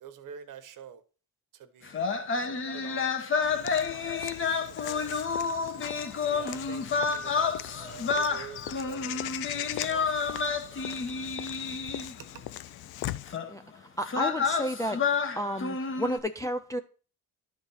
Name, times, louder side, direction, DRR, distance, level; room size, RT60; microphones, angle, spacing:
voice 1, 0.0-1.0 1.5-5.1 6.3-9.3 9.7-10.5 12.3-12.5, right 8 dB, 55° right, 1.1 m, -47 dB
sound 1, 1.9-12.3 13.3-13.5 14.0-16.2, left 5 dB, 30° left, 1.1 m, -30 dB
Walk footsteps / Bird vocalization bird call bird song, 3.4-13.4, left 15 dB, 75° left, 0.5 m, -40 dB
voice 2, 14.0-15.0 15.4-16.8, equal, 10° left, 0.4 m, -31 dB
11.5 x 4.3 x 5.6 m
cardioid pair, 155°, 38 cm